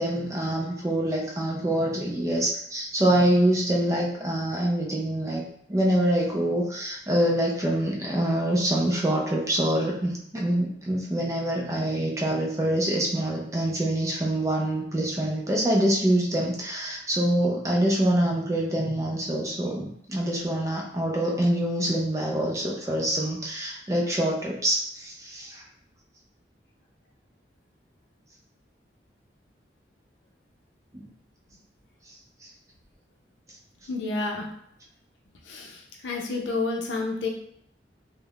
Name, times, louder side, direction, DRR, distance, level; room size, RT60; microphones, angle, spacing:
voice 1, 0.0-5.4 5.7-25.6 32.4-32.5, right 1 dB, 15° right, -2 dB, 0.4 m, -25 dB
voice 2, 33.9-34.5 35.5-37.3, left 3 dB, 85° left, 0 dB, 0.5 m, -30 dB
3.3 x 2.1 x 2.3 m, 0.68 s
head